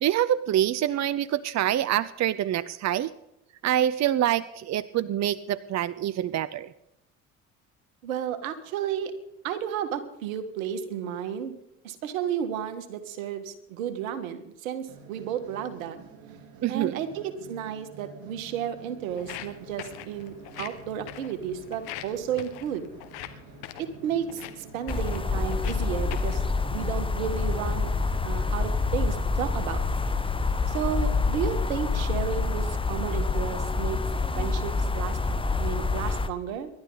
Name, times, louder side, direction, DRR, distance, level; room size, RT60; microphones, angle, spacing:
voice 1, 0.0-3.1 3.6-6.7 16.6-17.0, right 11 dB, 40° right, 19 dB, 0.7 m, -26 dB
voice 2, 8.0-9.1 9.4-11.6 11.8-16.0 16.7-22.9 23.8-26.4 26.7-27.9 28.2-29.8 30.7-34.0 34.4-36.7, right 9 dB, 80° right, 10 dB, 1.8 m, -32 dB
sound 1, 14.9-32.6, right 5 dB, 60° right, 2.8 m, -48 dB
Walk footsteps, 19.1-26.5, left 13 dB, 70° left, 1.7 m, -43 dB
sound 2, 24.9-36.3, left 4 dB, 15° left, 1.2 m, -27 dB
27.0 x 12.0 x 4.0 m, 0.84 s
hypercardioid pair, 65°, 40 cm